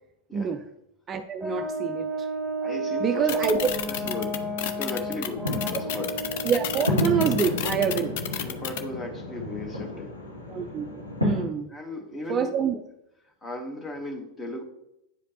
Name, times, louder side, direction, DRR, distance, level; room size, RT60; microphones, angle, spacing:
voice 1, 0.3-0.6 1.1-2.3 3.0-3.7 5.7-5.8 6.4-8.2 10.5-10.9 11.2-11.7 12.3-12.8, right 6 dB, 25° right, 7 dB, 0.4 m, -26 dB
Brass instrument, 1.4-8.1, right 2 dB, ahead, 2.0 m, -32 dB
voice 2, 2.6-4.4 4.8-6.2 8.4-10.1 11.7-12.5 13.4-14.6, left 2 dB, 15° left, 5 dB, 1.1 m, -36 dB
sound 1, 3.3-8.8, left 10 dB, 50° left, 0.5 m, -31 dB
sound 2, 3.7-11.5, left 1 dB, 85° left, 1.2 m, -32 dB
9.3 x 4.9 x 2.9 m, 0.83 s
figure-of-eight pair, 90°, 0 cm